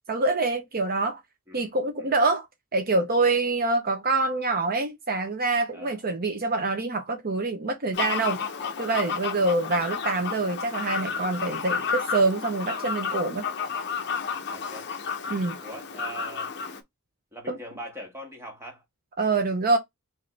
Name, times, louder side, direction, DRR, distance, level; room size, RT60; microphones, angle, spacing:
voice 1, 0.1-1.2 1.5-2.4 2.7-8.4 8.8-13.4 15.3-15.6 17.5-17.6 19.2-19.8, right 3 dB, 45° right, 0.8 m, -25 dB
voice 2, 5.7-6.0 9.4-9.6 14.5-14.9 15.6-16.5 17.3-18.8, right 1 dB, 10° right, 1.5 m, -41 dB
Fowl, 7.9-16.8, left 6 dB, 50° left, 0.8 m, -32 dB
5.0 x 2.7 x 3.4 m
head